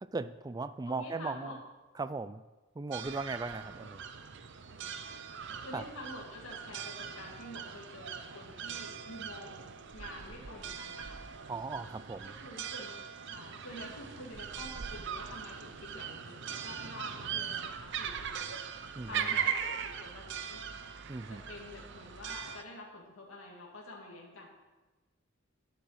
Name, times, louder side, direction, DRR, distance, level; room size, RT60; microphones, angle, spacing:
voice 1, 0.0-1.6 2.0-2.4 2.8-4.0 5.7-5.8 11.5-12.4 18.9-19.4 21.1-21.4, right 3 dB, 20° right, 13 dB, 0.3 m, -38 dB
voice 2, 0.9-1.6 3.6-3.7 4.7-11.2 12.2-13.0 13.2-18.6 19.0-20.6 21.3-24.5, left 1 dB, 75° left, -2 dB, 2.1 m, -48 dB
Seaside Town, 2.9-22.6, right 7 dB, 60° right, 0.7 m, -40 dB
sound 1, 3.8-22.6, equal, 5° left, 4.3 m, -66 dB
sound 2, 13.7-16.1, right 1 dB, 85° right, 2.9 m, -63 dB
10.0 x 7.3 x 6.4 m, 1.2 s
head